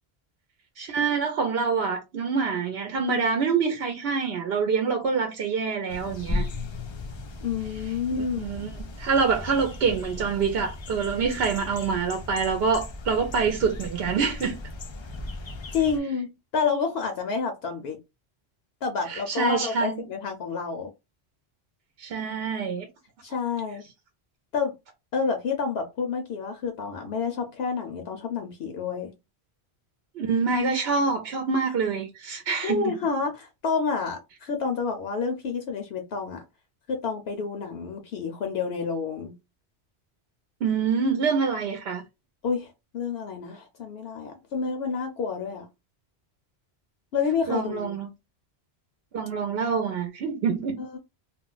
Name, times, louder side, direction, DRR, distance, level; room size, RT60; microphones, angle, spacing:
voice 1, 0.8-6.5 7.9-8.7 9.0-14.6 19.1-20.1 22.0-22.9 30.2-32.9 40.6-42.0 47.5-48.1 49.1-50.8, right 5 dB, 70° right, 0.8 m, -26 dB
sound 1, 5.9-16.0, left 2 dB, 50° left, 0.3 m, -36 dB
voice 2, 7.4-8.5 15.7-16.3 16.5-18.0 18.8-20.9 23.2-23.8 24.5-24.7 25.1-29.1 32.6-36.4 36.9-39.3 42.4-45.7 47.1-48.0 50.8-51.0, left 5 dB, 70° left, 0.8 m, -29 dB
2.4 x 2.0 x 3.8 m
omnidirectional pair, 1.1 m